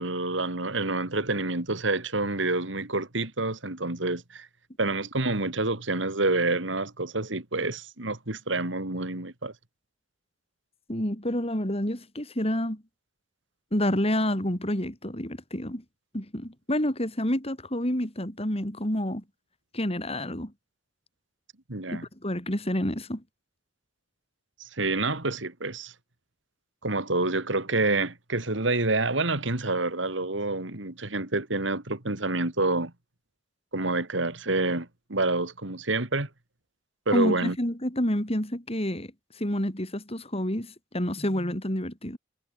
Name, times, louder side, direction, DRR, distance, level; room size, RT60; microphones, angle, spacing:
voice 1, 0.0-4.5 4.8-9.5 21.7-22.0 24.6-25.9 26.8-32.9 33.7-36.3 37.1-37.6, right 2 dB, 70° right, 2.8 m, -28 dB
voice 2, 10.9-12.8 13.7-15.8 16.1-19.2 19.7-20.5 21.9-23.2 37.1-42.2, left 1 dB, 30° left, 5.0 m, -29 dB
head